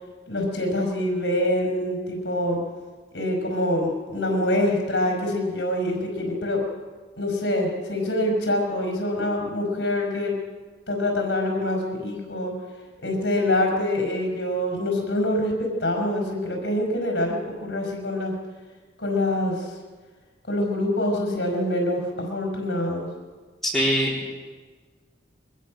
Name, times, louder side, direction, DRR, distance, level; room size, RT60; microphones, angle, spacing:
voice 1, 0.3-2.6 3.1-6.7 7.2-10.4 10.9-12.5 13.0-18.3 19.0-19.8 20.5-23.1, left 1 dB, 75° left, 1 dB, 5.2 m, -25 dB
voice 2, 23.6-24.3, equal, ahead, -5 dB, 3.9 m, -23 dB
22.5 x 20.5 x 6.4 m, 1.4 s
head